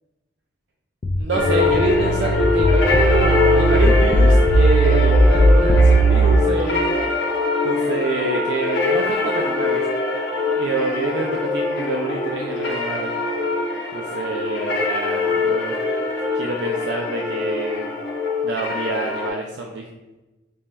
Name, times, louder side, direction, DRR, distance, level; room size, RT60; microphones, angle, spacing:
sound 1, 1.0-6.4, right 1 dB, 30° left, 0.3 m, -16 dB
voice 1, 1.1-7.0 7.6-9.8 10.5-13.1 13.9-15.8 16.3-17.9 18.4-19.9, right 2 dB, 85° right, 1 dB, 0.4 m, -27 dB
sound 2, 1.3-19.3, left 3 dB, 85° left, 0.7 m, -23 dB
5.2 x 2.2 x 3.0 m, 1.1 s
head